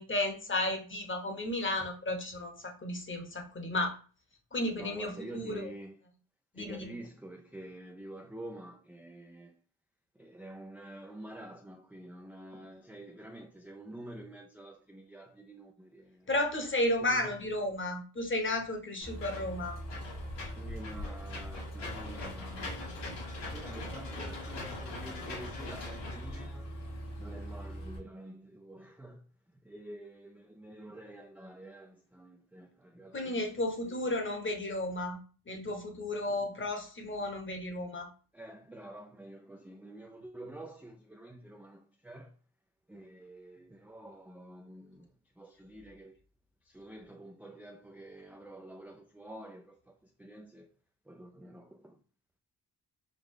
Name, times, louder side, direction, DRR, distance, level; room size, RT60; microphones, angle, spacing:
voice 1, 0.0-4.0 4.5-5.7 6.5-6.9 16.3-19.8 33.1-35.2 35.5-38.1, left 1 dB, 30° left, 1.1 m, -33 dB
voice 2, 4.8-6.0 6.5-9.6 10.2-16.3 17.1-17.3 20.6-22.8 23.1-26.7 27.2-29.2 29.6-33.5 33.9-34.2 36.3-36.5 38.3-42.3 42.9-45.1 45.4-46.2 46.6-50.7 51.1-52.0, right 1 dB, 5° right, 0.4 m, -48 dB
Engine / Mechanisms, 19.0-28.0, left 1 dB, 75° left, 2.3 m, -40 dB
5.1 x 2.3 x 3.7 m
cardioid pair, 95°, 42 cm